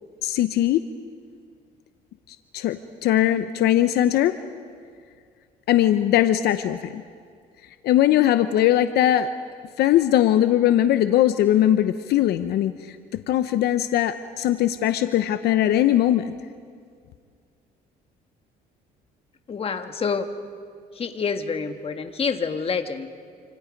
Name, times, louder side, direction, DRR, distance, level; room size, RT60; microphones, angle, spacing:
voice 1, 0.2-0.8 2.3-4.3 5.7-7.0 7.8-9.3 9.8-13.0 13.3-16.4, left 12 dB, 70° left, 10 dB, 0.8 m, -20 dB
voice 2, 19.5-20.3 20.9-23.1, left 5 dB, 35° left, 7 dB, 1.6 m, -27 dB
28.0 x 26.5 x 5.3 m, 2.1 s
cardioid pair, 110°, 17 cm